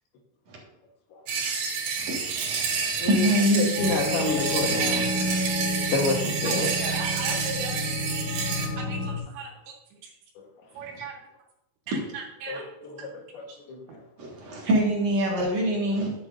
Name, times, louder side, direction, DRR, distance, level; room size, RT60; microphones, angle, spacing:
sound 1, 1.3-8.7, right 5 dB, 75° right, 3.8 m, -29 dB
voice 1, 2.0-3.9 7.0-7.1 8.2-8.7 14.2-16.1, equal, 50° right, -2 dB, 2.4 m, -26 dB
voice 2, 3.6-5.1 5.9-6.7 12.5-13.8 14.2-14.3, left 3 dB, 70° left, 1 dB, 3.0 m, -29 dB
sound 2, 3.8-9.2, left 1 dB, 50° left, 2.0 m, -30 dB
voice 3, 6.4-7.8 8.8-9.7 10.0-10.1 10.7-11.1 11.9-12.6 13.5-13.6, right 5 dB, 90° right, -2 dB, 3.4 m, -37 dB
10.5 x 8.1 x 2.6 m, 0.85 s
omnidirectional pair, 4.9 m